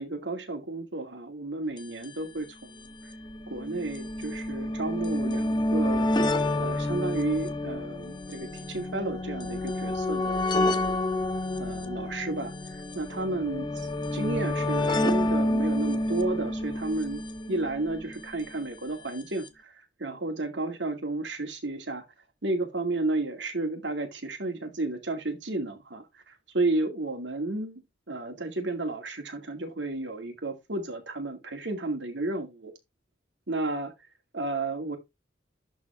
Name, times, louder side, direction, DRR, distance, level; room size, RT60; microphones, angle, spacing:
voice 1, 0.0-2.9 3.5-11.0 11.6-13.7 14.1-17.2 17.5-22.0 22.4-27.8 28.1-32.7 33.5-33.9 34.3-35.0, right 2 dB, 85° right, 2.3 m, -32 dB
sound 1, 1.8-1.9 2.0-2.1 3.0-18.2 19.2-19.3 19.5-19.6, left 1 dB, 25° left, 0.9 m, -29 dB
11.0 x 4.1 x 3.6 m
head